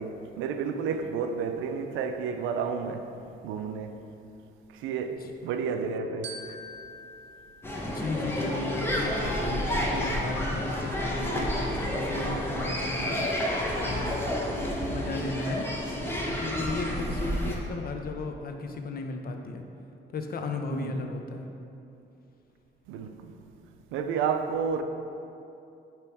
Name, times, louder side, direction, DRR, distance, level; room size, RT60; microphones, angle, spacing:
voice 1, 0.0-3.2 3.4-4.0 4.7-6.6 20.7-21.0 22.9-23.4 23.9-24.8, right 6 dB, 90° right, 0.4 m, -31 dB
Glockenspiel, 6.2-8.7, right 1 dB, 60° right, 0.7 m, -45 dB
sound 1, 7.6-17.6, equal, 10° left, 0.9 m, -30 dB
voice 2, 7.8-11.5 11.8-13.2 13.8-14.2 14.8-15.7 16.3-19.6 20.1-21.5, left 3 dB, 50° left, 0.6 m, -35 dB
6.8 x 3.0 x 4.6 m
cardioid pair, 90°, 20 cm